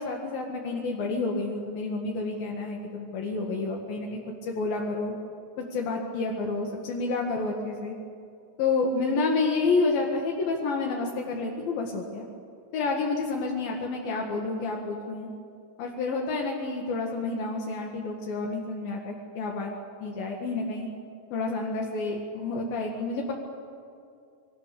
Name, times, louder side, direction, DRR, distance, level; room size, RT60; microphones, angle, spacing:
voice 1, 0.0-5.1 5.6-8.0 8.6-12.3 12.7-15.3 15.8-19.7 20.0-20.9 21.3-23.3, left 3 dB, 75° left, 0 dB, 3.5 m, -29 dB
27.0 x 22.5 x 6.8 m, 2.5 s
omnidirectional pair, 4.2 m